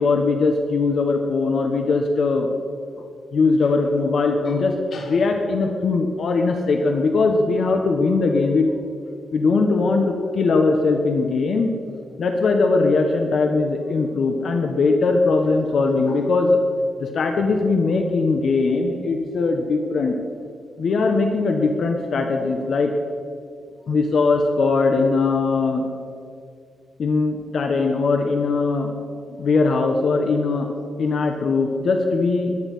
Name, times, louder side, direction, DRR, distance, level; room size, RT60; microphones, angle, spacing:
voice 1, 0.0-2.5 3.3-8.7 9.3-11.7 12.2-16.6 17.0-20.1 20.8-22.9 23.9-25.8 27.0-28.9 29.4-30.7 31.0-32.7, left 3 dB, 55° left, 4 dB, 1.4 m, -20 dB
21.5 x 9.9 x 5.7 m, 2.4 s
wide cardioid pair, 150°, 0 cm